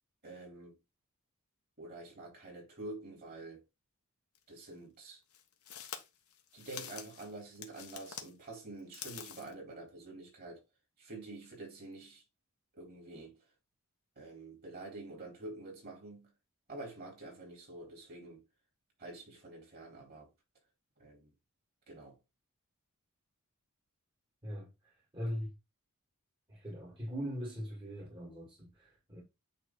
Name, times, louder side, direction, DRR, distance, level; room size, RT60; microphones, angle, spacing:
voice 1, 0.2-0.8 1.8-3.6 4.5-5.2 6.5-10.6 11.0-12.2 12.8-13.4 14.2-16.3 16.7-18.4 19.0-20.3 21.0-21.3 21.9-22.2, right 2 dB, 45° right, 4.4 m, -47 dB
sound 1, 4.3-4.4 5.3-8.3 8.8-9.5, left 8 dB, 85° left, 1.3 m, -46 dB
voice 2, 24.4-25.5 26.5-29.2, equal, 25° right, 2.0 m, -41 dB
9.0 x 3.3 x 4.0 m
head